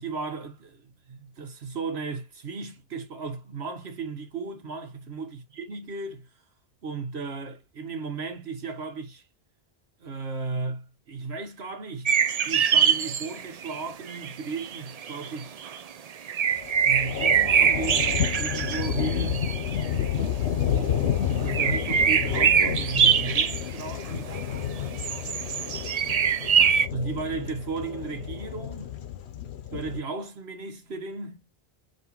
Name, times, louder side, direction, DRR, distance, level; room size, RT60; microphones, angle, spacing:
voice 1, 0.0-6.3 6.8-9.2 10.0-15.6 16.8-19.5 20.7-24.4 26.9-29.0 29.7-31.4, right 4 dB, 80° right, 1.5 m, -35 dB
sound 1, 12.1-13.8 14.1-15.8 16.3-20.1 21.5-24.6 25.0-26.9, right 7 dB, 50° right, 0.5 m, -24 dB
sound 2, 16.5-30.0, left 9 dB, 90° left, 1.0 m, -30 dB
5.3 x 3.1 x 2.9 m
omnidirectional pair, 1.1 m